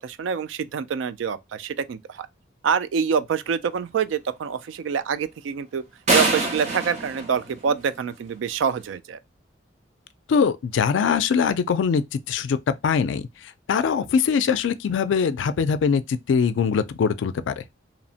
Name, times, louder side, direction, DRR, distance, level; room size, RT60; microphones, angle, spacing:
voice 1, 0.0-2.3 2.6-5.8 6.1-9.2, right 6 dB, 85° right, 0.3 m, -26 dB
sound 1, 6.1-8.2, right 2 dB, 35° right, 0.7 m, -24 dB
voice 2, 10.3-17.6, left 6 dB, 80° left, 0.3 m, -22 dB
2.9 x 2.1 x 2.7 m
head